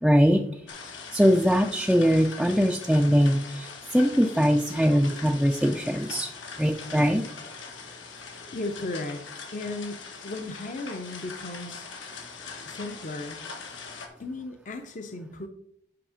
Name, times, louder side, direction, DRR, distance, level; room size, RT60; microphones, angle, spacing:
voice 1, 0.0-0.6 1.1-6.3 6.6-7.3, equal, ahead, 0.4 m, -22 dB
sound 1, 0.7-14.1, left 5 dB, 90° left, 1.8 m, -42 dB
voice 2, 8.5-9.2 9.5-11.9 12.6-13.4 14.2-15.5, left 2 dB, 40° left, 0.7 m, -35 dB
8.8 x 5.7 x 4.9 m
head